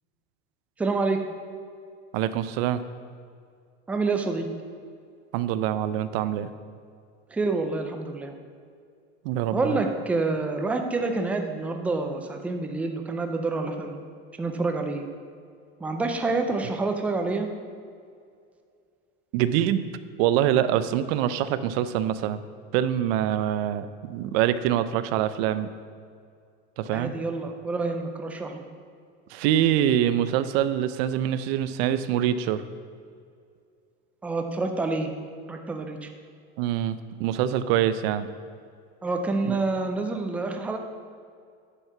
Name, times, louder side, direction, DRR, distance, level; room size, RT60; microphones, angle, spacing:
voice 1, 0.8-1.2 3.9-4.5 7.3-8.3 9.5-14.0 14.4-15.1 15.8-17.5 26.9-28.6 34.2-35.1 35.5-36.1 39.0-40.8, right 3 dB, 5° right, 4 dB, 0.3 m, -27 dB
voice 2, 2.1-2.8 5.3-6.5 9.2-9.8 19.3-19.9 20.2-22.4 22.7-25.7 26.8-27.1 29.3-32.6 36.6-38.3 39.4-39.6, right 11 dB, 65° right, 13 dB, 0.6 m, -25 dB
9.8 x 4.6 x 5.8 m, 2.3 s
supercardioid pair, 150°, 34 cm